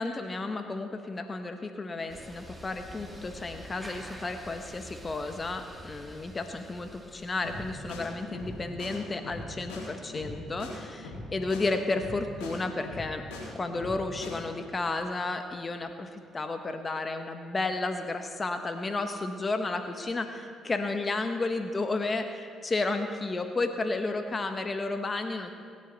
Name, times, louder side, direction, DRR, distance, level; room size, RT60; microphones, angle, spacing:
voice 1, 0.0-13.2 13.5-25.5, left 3 dB, 30° left, 7 dB, 1.2 m, -32 dB
sound 1, 2.1-8.9, right 1 dB, 10° right, 2.3 m, -47 dB
sound 2, 7.4-7.6 7.9-8.0 8.3-8.5 8.8-8.9 9.2-9.4 9.7-9.8 10.1-10.3 10.6-10.7 11.0-11.2 11.5-11.6 11.9-12.1 12.4-12.5 12.8-13.4 13.7-14.0 14.2-14.3, left 3 dB, 85° left, 4.5 m, -40 dB
26.0 x 10.0 x 4.1 m, 2.2 s
hypercardioid pair, 55°, 0 cm